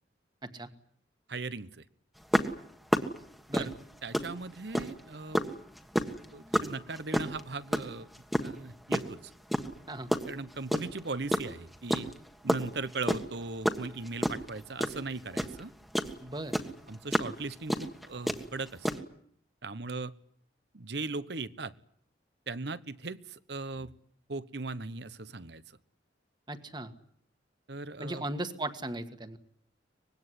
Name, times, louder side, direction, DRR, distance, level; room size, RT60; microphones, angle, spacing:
voice 1, 1.3-1.8 3.6-3.7 4.0-5.4 6.3-8.1 8.4-9.3 10.3-12.1 12.4-15.7 16.9-18.9 19.6-20.1 20.7-21.7 22.5-23.9 24.3-25.6 27.7-28.2, right 3 dB, 65° right, 15 dB, 1.1 m, -38 dB
sound 1, 2.3-5.0 5.3-9.1 9.5-11.0 11.3-16.1 16.5-19.0, equal, ahead, 1.6 m, -29 dB
voice 2, 16.2-16.6 26.5-26.9 28.0-29.4, right 1 dB, 25° right, 8 dB, 1.7 m, -37 dB
24.5 x 20.5 x 9.9 m, 0.67 s
head